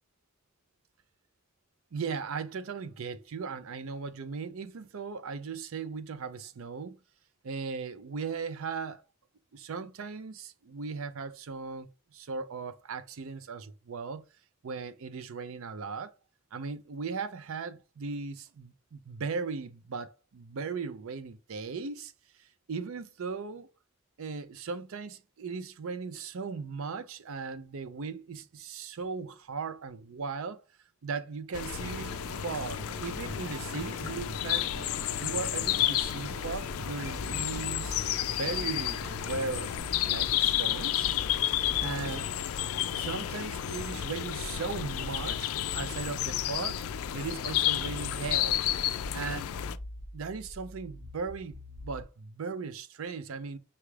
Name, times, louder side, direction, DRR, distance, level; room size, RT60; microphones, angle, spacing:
voice 1, 1.9-7.0 7.4-9.0 9.5-14.2 14.6-16.1 16.5-22.1 22.4-23.7 24.2-30.6 31.0-34.7 35.2-39.7 40.0-41.1 41.8-42.3 42.9-46.8 47.1-48.6 49.1-49.5 50.1-53.6, right 5 dB, 65° right, 0.5 m, -37 dB
sound 1, 31.5-49.8, left 12 dB, 70° left, 0.3 m, -31 dB
sound 2, 31.8-39.8, right 1 dB, 45° right, 0.8 m, -44 dB
sound 3, 36.5-52.0, left 1 dB, 5° right, 1.0 m, -45 dB
5.7 x 2.4 x 3.2 m
head